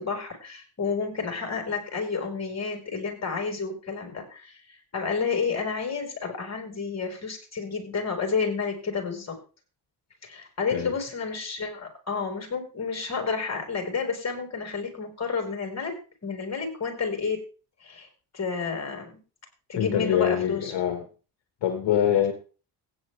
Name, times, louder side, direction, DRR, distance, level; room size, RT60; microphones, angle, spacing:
voice 1, 0.0-4.6 4.9-9.4 10.2-15.9 16.2-17.4 17.8-18.1 18.3-19.2 19.7-20.7, left 5 dB, 35° left, 3 dB, 5.3 m, -30 dB
voice 2, 19.7-21.0 21.6-22.3, left 10 dB, 70° left, 5 dB, 1.9 m, -24 dB
16.0 x 9.6 x 3.5 m, 0.36 s
supercardioid pair, 70°, 45 cm